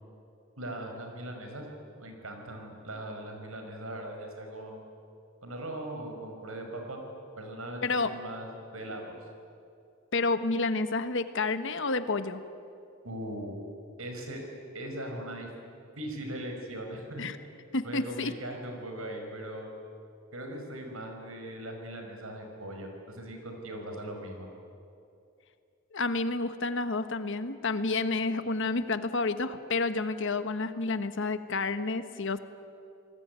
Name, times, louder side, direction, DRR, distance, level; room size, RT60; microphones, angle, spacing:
voice 1, 0.6-1.7 2.0-4.8 5.4-7.0 7.4-9.2 13.0-13.5 14.0-14.4 14.7-15.5 16.0-17.2 17.8-19.7 20.3-24.5, right 1 dB, 90° right, 3 dB, 5.4 m, -39 dB
voice 2, 7.8-8.1 10.1-12.4 17.2-17.4 17.7-18.3 25.9-32.4, left 3 dB, 65° left, 11 dB, 1.4 m, -30 dB
28.5 x 19.5 x 9.7 m, 2.6 s
head